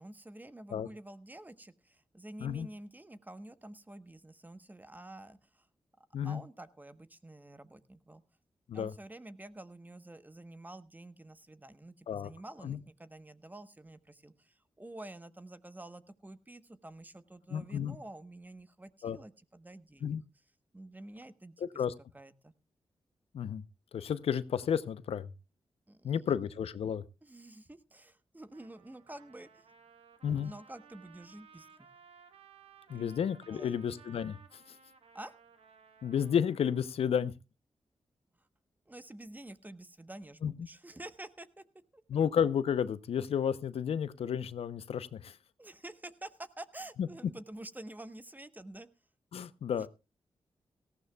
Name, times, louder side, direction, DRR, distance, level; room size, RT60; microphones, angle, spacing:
voice 1, 0.0-5.7 6.2-8.2 8.7-20.2 20.7-21.8 22.1-22.5 25.9-26.3 27.2-29.7 30.2-31.9 32.9-33.1 33.5-33.7 35.1-35.3 38.9-41.6 41.9-42.2 45.6-48.9 49.7-49.9, right 1 dB, 15° right, 12 dB, 1.1 m, -49 dB
voice 2, 17.5-18.0 19.0-19.2 20.0-20.2 21.6-21.9 23.3-23.6 23.9-25.3 26.0-27.0 30.2-30.5 32.9-34.4 36.0-37.3 40.4-40.5 42.1-45.4 47.0-47.1 49.3-49.9, left 8 dB, 80° left, 15 dB, 0.7 m, -32 dB
Trumpet, 28.5-36.9, right 6 dB, 85° right, 1.2 m, -59 dB
18.0 x 15.0 x 2.3 m, 0.27 s
cardioid pair, 65°, 10 cm